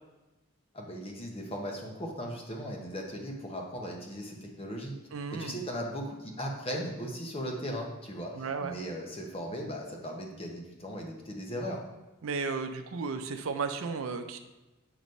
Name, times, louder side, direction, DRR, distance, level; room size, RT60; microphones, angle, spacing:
voice 1, 0.7-4.9 5.3-11.8, equal, 25° left, 0 dB, 0.9 m, -37 dB
voice 2, 5.1-5.6 8.3-8.8 12.2-14.4, right 4 dB, 65° right, 7 dB, 0.5 m, -34 dB
7.9 x 3.0 x 5.3 m, 1.1 s
head